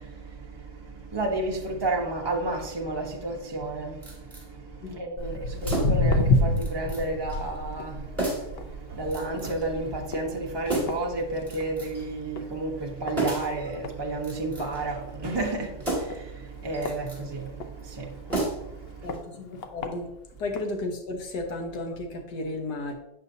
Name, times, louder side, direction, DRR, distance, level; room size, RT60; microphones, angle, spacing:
voice 1, 0.0-19.2, right 2 dB, 25° right, 0.5 m, -32 dB
sound 1, 4.0-4.5 5.6-6.1 6.6-7.0 7.3-7.4 8.2-8.6 9.1-9.7 10.7-11.1 11.5-12.1 13.2-13.6 14.2-14.8 15.8-16.3 16.7-17.2 18.3-18.8 19.1-19.2, right 2 dB, 10° right, 2.0 m, -31 dB
voice 2, 4.8-5.3 19.0-20.1 20.4-22.9, left 2 dB, 70° left, 1.6 m, -34 dB
Walk footsteps, 5.2-11.8 12.1-12.5 13.1-13.2 13.8-13.9 14.3-14.4 14.6-14.7 15.3-15.4 16.1-17.7 18.3-18.4 19.1-19.2 19.6-19.9 20.6-20.7, left 2 dB, 85° left, 0.5 m, -28 dB
8.1 x 5.7 x 2.7 m
omnidirectional pair, 1.8 m